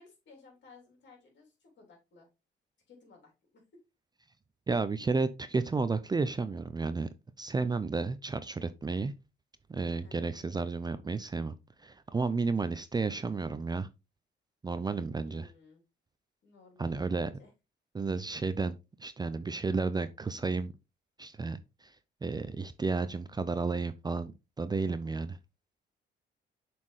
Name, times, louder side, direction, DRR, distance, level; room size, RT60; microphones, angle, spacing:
voice 1, 0.0-2.3 2.9-3.6 9.9-10.2 15.1-15.8 16.4-17.5, left 4 dB, 65° left, 3.2 m, -58 dB
voice 2, 4.7-7.1 7.4-9.1 9.7-11.5 11.8-13.9 14.6-15.5 16.8-17.3 17.9-18.7 19.0-20.7 21.2-21.6 22.2-24.3 24.6-25.4, right 4 dB, 20° right, 0.5 m, -32 dB
7.1 x 4.4 x 3.2 m
cardioid pair, 90°, 20 cm